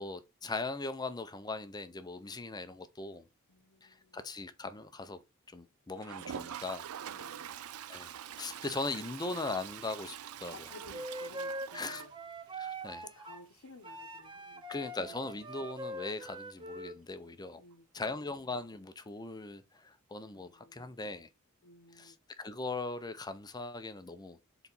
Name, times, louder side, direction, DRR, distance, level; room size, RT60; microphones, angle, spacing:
voice 1, 0.0-3.3 3.8-5.2 5.5-6.9 7.9-10.5 11.7-12.0 12.6-13.0 14.7-17.6 17.9-21.3 21.9-24.4, left 3 dB, 20° left, 0.6 m, -39 dB
voice 2, 3.5-4.3 7.1-7.5 10.5-12.1 13.0-15.2 17.6-18.2 20.3-20.8 21.6-22.2, left 2 dB, 85° left, 0.9 m, -56 dB
Toilet flush, 6.0-12.7 13.0-13.1 13.3-13.4 13.7-13.8 16.3-16.4 17.7-17.8, right 9 dB, 90° right, 0.4 m, -45 dB
Wind instrument woodwind instrument, 10.7-13.4 13.8-17.0, right 1 dB, 20° right, 0.8 m, -43 dB
4.7 x 4.0 x 5.4 m
head